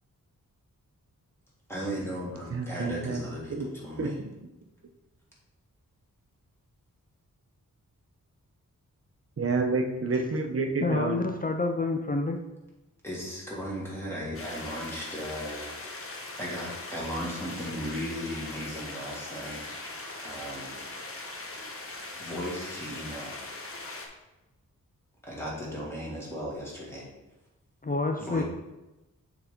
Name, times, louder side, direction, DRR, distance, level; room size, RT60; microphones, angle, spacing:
voice 1, 1.7-4.2 13.0-19.6 20.2-20.8 22.2-23.4 25.3-27.1 28.2-28.4, equal, 10° left, -5 dB, 1.9 m, -36 dB
voice 2, 2.5-3.2 3.5-3.7 4.0-4.3 9.4-11.3, right 3 dB, 45° right, 4 dB, 0.8 m, -29 dB
voice 3, 10.8-12.4 27.8-28.4, left 3 dB, 25° left, 4 dB, 0.4 m, -28 dB
sound 1, 14.3-24.1, left 2 dB, 45° left, 0.9 m, -40 dB
6.8 x 4.1 x 3.8 m, 1.0 s
wide cardioid pair, 115°, 32 cm